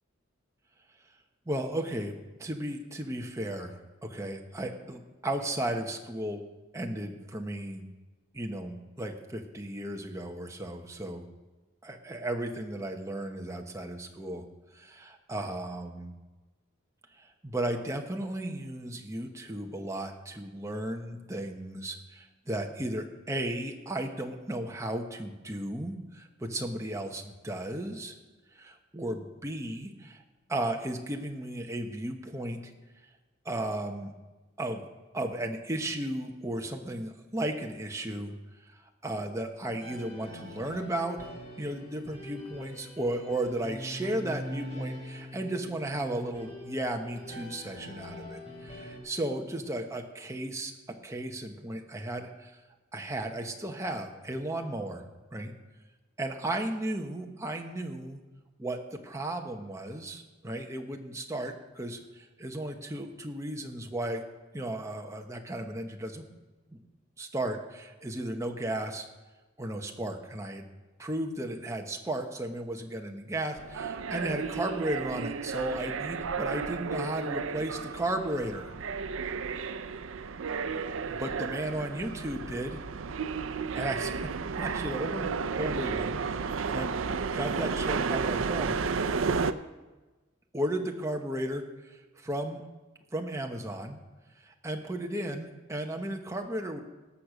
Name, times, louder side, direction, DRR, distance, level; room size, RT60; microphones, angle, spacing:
voice 1, 1.5-6.4 6.7-7.8 8.3-11.3 11.8-14.4 14.7-16.1 17.2-28.1 28.6-30.2 30.5-32.7 33.4-34.1 34.6-34.8 35.1-38.3 39.0-41.2 41.6-50.7 51.0-52.5 52.9-55.0 55.3-55.5 56.2-58.2 58.6-64.2 64.5-66.3 67.2-69.1 69.6-70.7 71.0-78.7 81.1-82.8 83.7-84.3 84.6-85.3 85.5-86.9 87.3-88.8 90.5-91.6 91.9-92.6 93.1-94.0 94.5-96.8, right 1 dB, 15° right, 3 dB, 1.1 m, -35 dB
sound 1, 39.8-49.0, left 1 dB, 30° left, 5.1 m, -43 dB
sound 2, 73.6-89.5, right 5 dB, 90° right, 0.5 m, -33 dB
18.5 x 6.8 x 6.1 m, 1.2 s
head